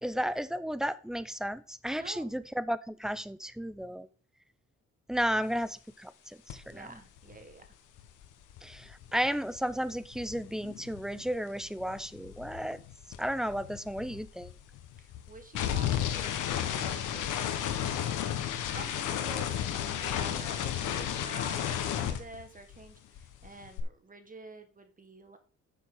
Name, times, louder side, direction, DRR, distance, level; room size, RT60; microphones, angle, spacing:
voice 1, 0.0-4.1 5.1-7.0 8.6-12.8 13.2-14.5, equal, ahead, 0.6 m, -33 dB
voice 2, 1.9-2.4 6.6-7.6 15.0-17.4 18.7-25.4, right 3 dB, 25° right, 1.5 m, -48 dB
sound 1, 6.5-6.7 7.0-11.4 11.6-22.9 23.1-23.8, left 10 dB, 90° left, 1.3 m, -34 dB
10.0 x 6.9 x 3.8 m
cardioid pair, 90°, 30 cm